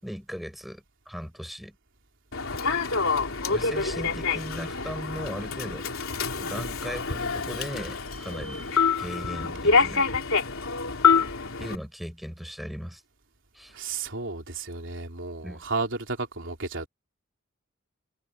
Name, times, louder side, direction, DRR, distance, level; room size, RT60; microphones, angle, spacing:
voice 1, 0.0-1.7 3.5-5.9 6.4-8.7 9.0-10.1 11.6-13.0 13.5-13.7 15.4-15.6, equal, ahead, 5.8 m, -38 dB
Human voice / Subway metro underground, 2.3-11.8, left 5 dB, 75° left, 3.7 m, -26 dB
voice 2, 13.7-16.9, right 3 dB, 65° right, 3.5 m, -33 dB
head